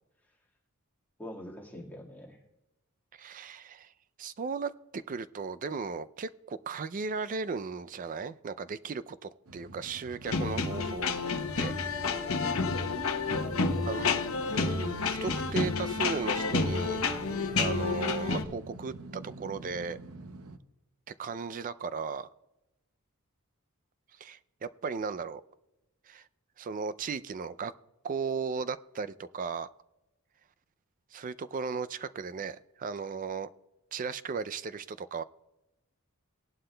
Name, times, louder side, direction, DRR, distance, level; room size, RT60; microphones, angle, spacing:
voice 1, 1.2-2.4 12.3-12.8 13.7-14.7, left 1 dB, 10° left, -2 dB, 1.7 m, -45 dB
voice 2, 3.1-3.9 4.2-11.1 11.5-11.7 13.8-14.1 14.5-17.0 17.6-20.0 21.1-22.3 24.2-25.4 26.1-26.2 26.6-27.7 28.0-29.7 31.1-33.5 33.9-35.2, right 5 dB, 40° right, 14 dB, 0.4 m, -36 dB
sound 1, 9.5-20.6, right 2 dB, 75° right, 0.7 m, -48 dB
sound 2, 10.3-18.4, left 4 dB, 65° left, 0.9 m, -30 dB
18.5 x 11.5 x 2.2 m, 0.99 s
head